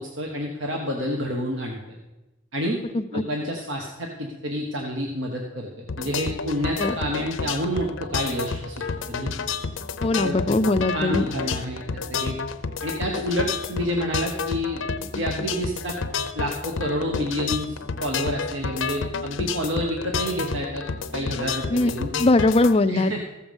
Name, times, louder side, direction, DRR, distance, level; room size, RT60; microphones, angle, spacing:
voice 1, 0.0-1.8 2.5-2.8 3.1-9.3 10.2-10.4 10.9-12.4 12.8-14.8 15.1-16.0 16.3-20.8 21.1-22.1 22.8-23.2, equal, 70° right, 1 dB, 1.3 m, -29 dB
sound 1, 5.9-22.7, left 5 dB, 75° left, 0.7 m, -30 dB
voice 2, 10.0-11.2 21.7-21.9 22.2-23.1, left 2 dB, 30° left, 11 dB, 0.4 m, -20 dB
14.5 x 7.2 x 5.3 m, 1.0 s
head